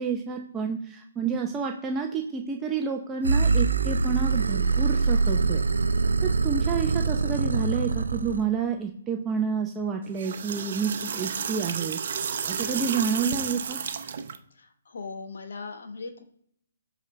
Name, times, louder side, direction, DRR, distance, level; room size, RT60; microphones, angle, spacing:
voice 1, 0.0-5.6 6.2-12.0 12.3-13.8, right 6 dB, 15° right, 2 dB, 0.6 m, -29 dB
sound 1, 3.2-8.5, right 4 dB, 90° right, 0.4 m, -24 dB
sound 2, 10.0-14.4, right 7 dB, 55° right, 0.7 m, -32 dB
voice 2, 14.5-16.2, left 4 dB, 70° left, 6 dB, 1.1 m, -39 dB
7.5 x 3.9 x 3.2 m, 0.70 s
hypercardioid pair, 150°, 0 cm